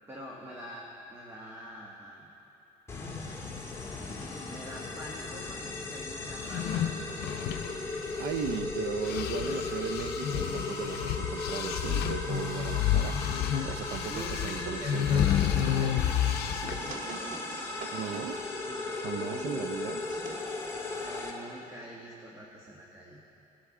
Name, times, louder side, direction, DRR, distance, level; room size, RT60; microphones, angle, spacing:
voice 1, 0.1-2.3 4.5-7.1 9.0-9.6 14.1-16.2 18.4-19.9 21.0-23.2, equal, 15° right, -3 dB, 1.2 m, -45 dB
sound 1, 2.9-21.3, left 3 dB, 15° left, 1.6 m, -37 dB
sound 2, 6.3-8.7 9.0-16.9, left 9 dB, 70° left, 0.6 m, -30 dB
voice 2, 8.2-13.2 13.6-15.2 17.9-18.4 18.9-20.0, right 9 dB, 70° right, 12 dB, 0.5 m, -37 dB
sound 3, 15.4-22.1, right 2 dB, 50° right, 1.6 m, -46 dB
19.0 x 8.2 x 3.6 m, 2.9 s
cardioid pair, 110°, 17 cm